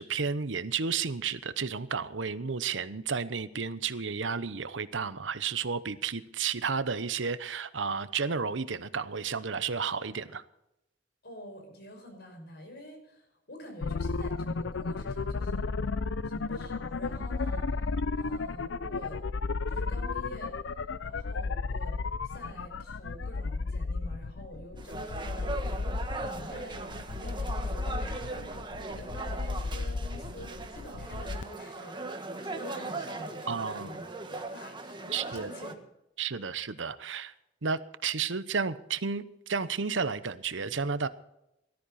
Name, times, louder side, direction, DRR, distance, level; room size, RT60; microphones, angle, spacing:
voice 1, 0.0-10.4 33.5-34.0 35.1-35.5 36.2-37.3 37.6-41.1, right 5 dB, 85° right, 14 dB, 0.9 m, -32 dB
voice 2, 11.2-15.8 16.2-17.8 18.1-19.2 19.7-20.6 21.0-25.9 26.2-32.0 32.4-35.8, equal, 60° left, 4 dB, 5.8 m, -47 dB
sound 1, 13.8-31.4, left 3 dB, 85° left, 0.6 m, -33 dB
sound 2, 24.8-35.7, right 3 dB, 25° right, 1.4 m, -39 dB
18.5 x 13.0 x 4.2 m, 0.85 s
head